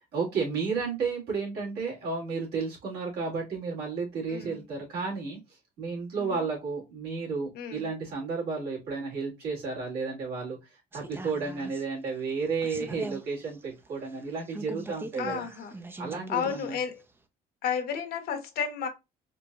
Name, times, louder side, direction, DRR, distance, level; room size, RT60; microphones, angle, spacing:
voice 1, 0.1-15.5 16.0-16.8, right 4 dB, 70° right, 2.3 m, -32 dB
voice 2, 4.3-4.6 6.2-6.4 7.5-7.9 15.2-15.7 16.3-16.9 17.6-18.9, left 7 dB, 65° left, 0.9 m, -32 dB
sound 1, 10.9-16.7 17.0-17.1, right 2 dB, 15° right, 0.4 m, -42 dB
4.3 x 2.6 x 2.2 m
cardioid pair, 110°, 17 cm